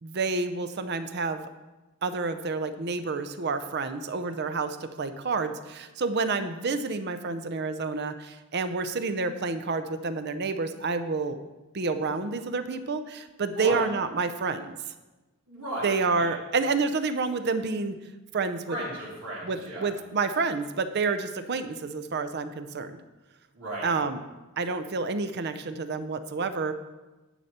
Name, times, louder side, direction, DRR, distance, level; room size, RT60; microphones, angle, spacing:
voice 1, 0.0-1.5 2.0-11.4 11.7-14.8 15.8-18.0 18.3-18.8 19.4-23.0 23.8-24.2 24.6-26.7, right 4 dB, 50° right, 11 dB, 0.6 m, -29 dB
voice 2, 13.4-13.8 15.5-16.4 18.7-19.9 23.5-23.9, right 1 dB, 90° right, -6 dB, 3.5 m, -35 dB
10.0 x 6.6 x 4.2 m, 1.1 s
head